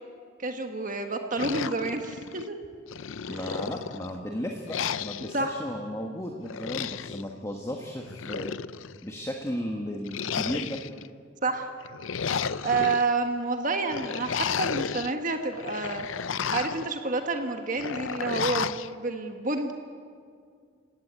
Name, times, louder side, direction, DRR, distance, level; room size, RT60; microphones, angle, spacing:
voice 1, 0.4-2.6 3.3-3.6 5.3-5.5 11.4-11.7 12.6-19.7, right 3 dB, 40° right, 5 dB, 1.5 m, -29 dB
sound 1, 1.3-2.5 2.9-4.1 4.7-5.4 6.5-7.2 8.0-9.0 10.0-11.1 11.8-13.0 13.9-15.1 15.5-16.9 17.7-18.9, left 7 dB, 80° left, 0.6 m, -32 dB
voice 2, 3.3-8.6 9.0-10.8, equal, 15° left, 2 dB, 1.6 m, -35 dB
29.5 x 17.5 x 8.9 m, 2.2 s
head